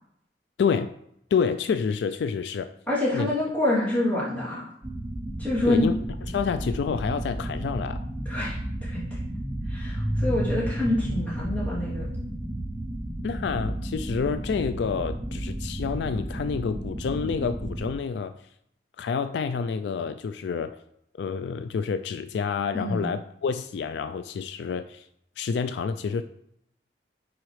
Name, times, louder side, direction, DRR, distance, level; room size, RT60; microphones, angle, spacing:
voice 1, 0.6-0.9 1.3-2.7 3.1-3.3 5.6-6.0 6.3-8.0 13.2-18.3 19.0-20.8 21.2-25.0 25.4-26.2, left 6 dB, 70° left, 10 dB, 0.3 m, -28 dB
voice 2, 2.9-4.6 5.4-5.9 8.3-8.5 8.8-9.0 9.7-12.0 22.7-23.0, left 1 dB, 10° left, -9 dB, 2.7 m, -26 dB
sound 1, 4.8-17.9, right 1 dB, 20° right, 0.6 m, -32 dB
9.6 x 4.0 x 3.2 m, 0.76 s
head